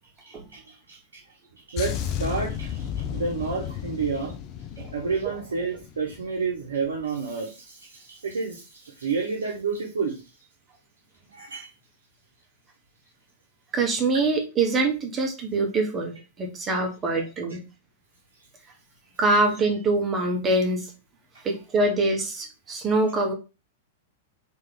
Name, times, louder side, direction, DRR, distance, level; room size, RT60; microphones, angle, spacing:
voice 1, 0.2-1.2 1.5-4.4 4.9-10.2 11.3-11.7, right 4 dB, 75° right, -1 dB, 0.9 m, -30 dB
sound 1, 1.8-6.3 6.6-6.9, left 9 dB, 40° left, 0.5 m, -33 dB
voice 2, 13.7-17.6 19.2-20.9 21.4-23.3, right 2 dB, 25° right, 2 dB, 1.1 m, -24 dB
3.2 x 3.0 x 3.8 m, 0.30 s
figure-of-eight pair, 100°, 0 cm